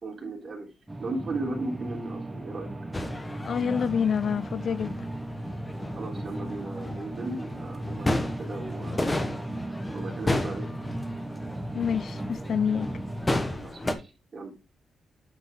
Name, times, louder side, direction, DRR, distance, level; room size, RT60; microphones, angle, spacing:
voice 1, 0.0-0.7 1.0-2.7 5.9-9.0 9.9-10.7 13.5-14.5, right 2 dB, 40° right, 3.4 m, -36 dB
sound 1, 0.9-13.5, right 1 dB, 10° right, 1.1 m, -36 dB
sound 2, 2.9-13.9, left 1 dB, 15° left, 1.2 m, -33 dB
voice 2, 3.4-5.1 11.7-12.9, left 7 dB, 55° left, 0.4 m, -27 dB
9.5 x 5.1 x 3.7 m
wide cardioid pair, 135°, 0 cm